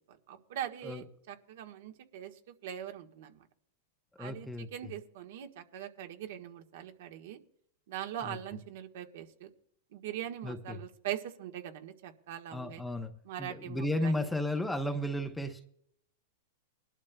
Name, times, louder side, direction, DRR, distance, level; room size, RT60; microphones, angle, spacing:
voice 1, 0.3-3.4 4.2-7.4 7.9-9.5 9.9-12.8 13.2-14.3, right 11 dB, 65° right, 5 dB, 1.5 m, -42 dB
voice 2, 4.2-4.9 8.2-8.6 10.4-10.8 12.5-13.1 13.4-15.7, left 1 dB, 5° left, 6 dB, 0.8 m, -34 dB
21.5 x 12.0 x 2.3 m, 0.70 s
supercardioid pair, 155°, 0 cm